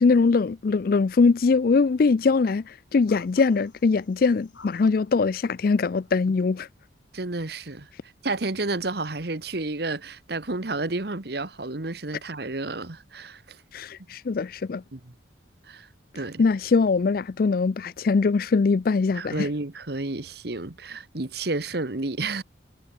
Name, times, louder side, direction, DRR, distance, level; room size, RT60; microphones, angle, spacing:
voice 1, 0.0-6.7 13.7-14.8 16.4-19.5, left 4 dB, 50° left, 0.4 m, -22 dB
sound 1, 3.0-5.1 6.0-6.3, left 4 dB, 80° left, 3.9 m, -50 dB
voice 2, 7.1-7.9 8.2-13.6 14.9-15.1 15.6-15.9 16.1-16.4 19.1-22.4, right 2 dB, 55° right, 1.3 m, -31 dB
head